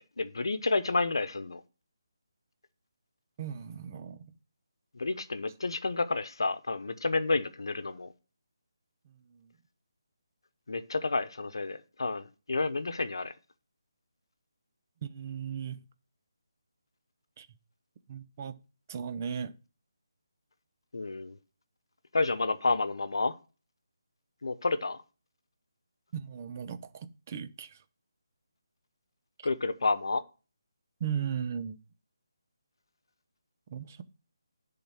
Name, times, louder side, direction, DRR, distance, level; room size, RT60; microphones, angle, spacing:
voice 1, 0.2-1.6 4.9-8.1 10.7-13.3 20.9-21.4 22.1-23.3 24.4-25.0 29.4-30.2, left 3 dB, 75° left, 0.9 m, -30 dB
voice 2, 3.4-4.3 9.0-9.5 15.0-15.8 17.4-17.5 18.1-18.6 18.9-19.5 26.1-27.8 31.0-31.8 33.7-34.0, right 8 dB, 35° right, 0.7 m, -37 dB
10.5 x 3.9 x 5.8 m
figure-of-eight pair, 160°, 2 cm